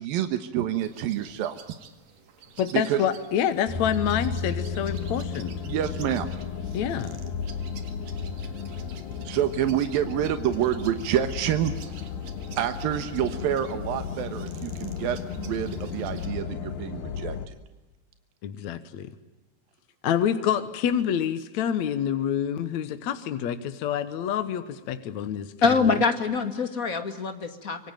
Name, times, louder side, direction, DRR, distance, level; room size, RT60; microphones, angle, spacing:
voice 1, 0.0-1.6 2.7-3.0 5.6-6.3 9.2-11.9 12.6-17.5, right 11 dB, 85° right, 9 dB, 3.1 m, -28 dB
sound 1, 0.7-16.3, right 8 dB, 70° right, 3.5 m, -51 dB
voice 2, 2.6-5.5 6.7-7.2 18.4-19.1 20.0-25.5 25.9-26.0, left 9 dB, 65° left, 11 dB, 2.2 m, -27 dB
sound 2, 3.7-17.5, left 6 dB, 80° left, 3.5 m, -34 dB
voice 3, 25.6-27.9, left 4 dB, 30° left, 8 dB, 1.8 m, -24 dB
26.0 x 24.0 x 9.1 m, 1.1 s
omnidirectional pair, 4.0 m